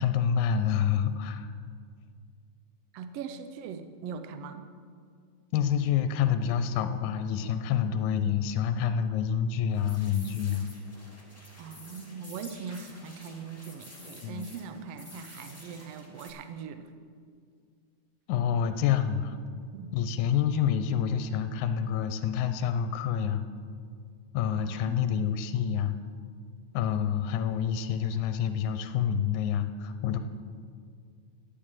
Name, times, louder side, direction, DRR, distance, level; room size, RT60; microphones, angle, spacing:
voice 1, 0.0-1.5 5.5-10.7 14.2-14.5 18.3-19.4 19.9-23.4 24.3-26.0 26.7-30.2, left 8 dB, 80° left, 9 dB, 2.0 m, -27 dB
voice 2, 2.9-4.6 11.6-16.9 19.7-19.9 24.5-25.3, right 6 dB, 75° right, 8 dB, 1.4 m, -41 dB
sound 1, 9.7-16.3, left 1 dB, 10° left, 1.0 m, -50 dB
10.0 x 6.9 x 8.9 m, 2.1 s
omnidirectional pair, 3.6 m